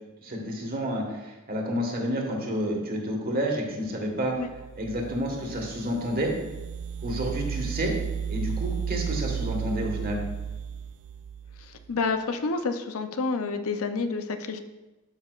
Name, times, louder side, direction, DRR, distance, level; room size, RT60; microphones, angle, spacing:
voice 1, 0.2-4.3 4.8-6.3 7.0-7.9 8.3-10.2, equal, 40° right, 1 dB, 1.5 m, -30 dB
sound 1, 4.3-11.9, right 7 dB, 60° right, 0.3 m, -34 dB
voice 2, 11.7-14.6, left 4 dB, 65° left, 8 dB, 0.6 m, -29 dB
12.5 x 5.5 x 2.4 m, 1.1 s
head